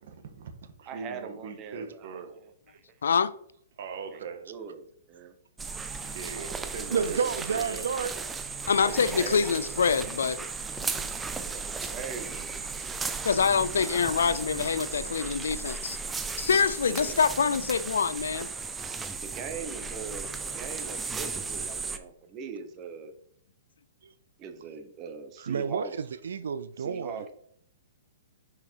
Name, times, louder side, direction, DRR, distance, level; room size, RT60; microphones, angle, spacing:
voice 1, 0.0-2.4 3.8-4.5 6.1-7.9 11.4-11.6, right 6 dB, 60° right, 1.6 m, -41 dB
voice 2, 0.9-3.0 4.1-5.3 6.3-7.3 8.8-9.6 11.4-12.6 16.9-17.2 19.2-23.1 24.4-25.9 26.8-27.3, right 6 dB, 25° right, 1.1 m, -41 dB
voice 3, 3.0-3.3 8.7-10.4 13.2-16.0 16.4-18.5, left 6 dB, 85° left, 0.5 m, -25 dB
sound 1, 5.6-22.0, right 4 dB, 10° right, 0.6 m, -35 dB
voice 4, 6.9-8.1 12.8-13.1 24.0-24.1 25.4-27.2, right 6 dB, 80° right, 0.5 m, -31 dB
6.6 x 5.7 x 4.7 m
hypercardioid pair, 145°, 0 cm